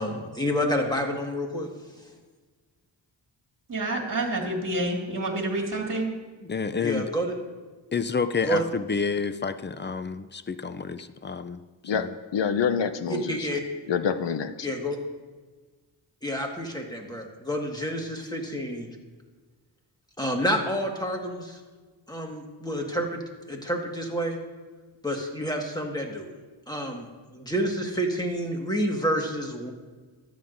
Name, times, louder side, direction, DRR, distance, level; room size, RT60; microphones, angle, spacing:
voice 1, 0.0-1.7 2.0-2.1 6.8-7.3 8.4-8.6 13.1-13.6 14.6-15.0 16.2-18.9 20.2-21.6 22.1-23.2 23.5-24.4 25.0-26.3 26.7-29.7, equal, 10° left, 1 dB, 1.6 m, -29 dB
voice 2, 3.7-6.1, right 1 dB, 40° right, 0 dB, 2.2 m, -28 dB
voice 3, 6.4-7.1 7.9-11.6 11.9-12.1, left 5 dB, 25° left, 11 dB, 0.4 m, -29 dB
voice 4, 12.3-13.4 13.9-14.7, left 7 dB, 65° left, 10 dB, 0.7 m, -26 dB
14.0 x 9.5 x 2.6 m, 1.3 s
cardioid pair, 70°, 48 cm